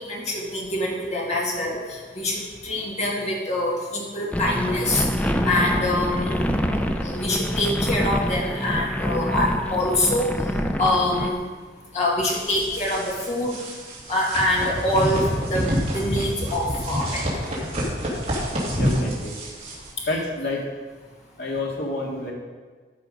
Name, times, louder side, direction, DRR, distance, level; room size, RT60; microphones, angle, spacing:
voice 1, 0.0-5.0 5.4-6.5 7.0-10.3 10.8-11.4 11.9-13.6 14.1-17.3, left 1 dB, 40° left, -2 dB, 2.2 m, -25 dB
sound 1, 4.3-11.3, equal, 10° left, 0.5 m, -26 dB
sound 2, 12.2-19.9, equal, 35° right, 2.6 m, -28 dB
voice 2, 18.7-19.4 20.1-20.7 21.4-22.3, left 2 dB, 65° left, -2 dB, 2.3 m, -28 dB
13.0 x 5.9 x 5.3 m, 1.4 s
head